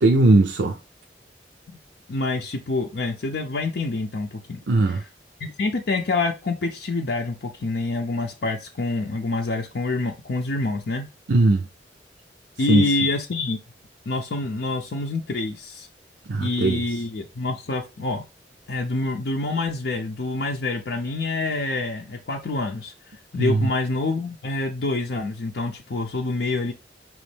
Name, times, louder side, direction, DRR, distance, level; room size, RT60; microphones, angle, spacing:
voice 1, 0.0-0.8 4.7-5.0 11.3-11.7 12.7-12.8 16.3-16.8 23.4-23.7, right 2 dB, 80° right, 0.6 m, -18 dB
voice 2, 2.1-4.6 4.9-5.1 5.4-11.1 12.6-13.6 14.1-15.9 16.4-18.2 18.7-22.9 23.3-26.7, left 2 dB, 65° left, 0.5 m, -27 dB
5.2 x 3.1 x 3.3 m
head